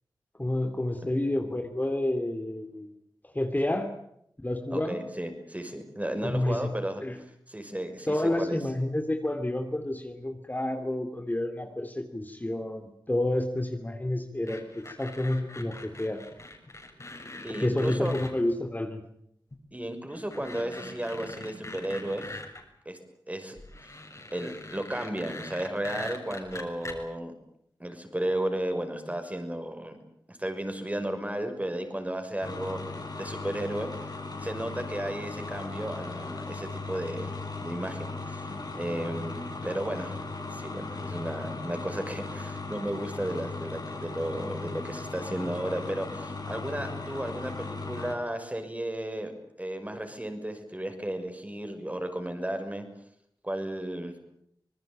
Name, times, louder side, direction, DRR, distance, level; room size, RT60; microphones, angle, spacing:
voice 1, 0.4-2.9 3.3-3.9 4.4-5.0 6.2-6.6 7.0-7.2 8.1-16.2 17.5-19.0, left 1 dB, 25° left, 6 dB, 3.0 m, -29 dB
voice 2, 4.7-8.6 17.4-18.1 19.7-22.4 22.8-23.0 23.3-23.6 23.8-23.9 24.3-27.3 27.8-29.9 30.3-32.8 33.2-33.9 34.4-38.4 38.8-40.2 40.5-49.3 49.6-52.8 53.4-54.1, right 1 dB, 20° right, 6 dB, 6.0 m, -34 dB
sound 1, 14.5-18.3 19.5-19.6 20.1-22.6 23.6-27.0, left 2 dB, 40° left, 6.8 m, -43 dB
sound 2, 32.4-48.1, left 3 dB, 60° left, 7.2 m, -37 dB
26.5 x 20.0 x 9.0 m, 0.73 s
wide cardioid pair, 50°, 8 cm